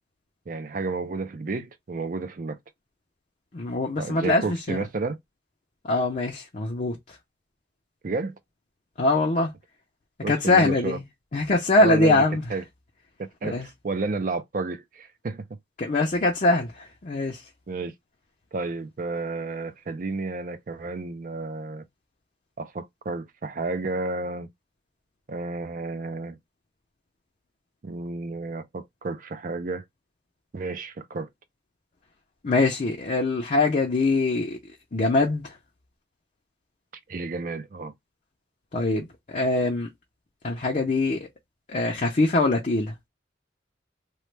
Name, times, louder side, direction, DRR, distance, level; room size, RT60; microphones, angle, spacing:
voice 1, 0.5-2.6 4.0-5.2 8.0-8.3 10.2-11.0 11.8-12.2 12.5-12.6 13.2-15.4 17.7-17.9 18.5-21.9 22.6-24.5 25.3-26.4 27.8-29.8 30.5-31.3 37.1-37.9, right 3 dB, 45° right, 0.4 m, -31 dB
voice 2, 3.5-4.8 5.8-7.2 9.0-9.5 10.3-11.0 11.3-12.4 13.4-13.7 15.8-17.4 32.4-34.6 34.9-35.5 38.7-39.9 40.4-41.3 41.7-42.9, left 2 dB, 40° left, 0.5 m, -23 dB
3.0 x 2.1 x 3.2 m
head